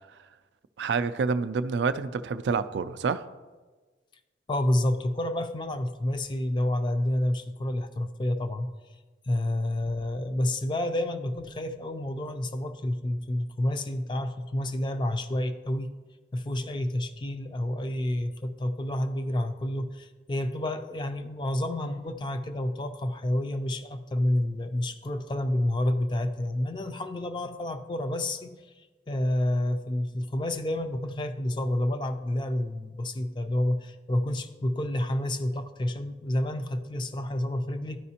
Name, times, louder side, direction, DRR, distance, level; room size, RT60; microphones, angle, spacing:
voice 1, 0.8-3.3, right 5 dB, 70° right, 13 dB, 0.3 m, -28 dB
voice 2, 4.5-8.7 9.3-15.9 16.3-38.0, left 1 dB, 25° left, 8 dB, 0.4 m, -29 dB
12.5 x 5.0 x 2.8 m, 1.3 s
head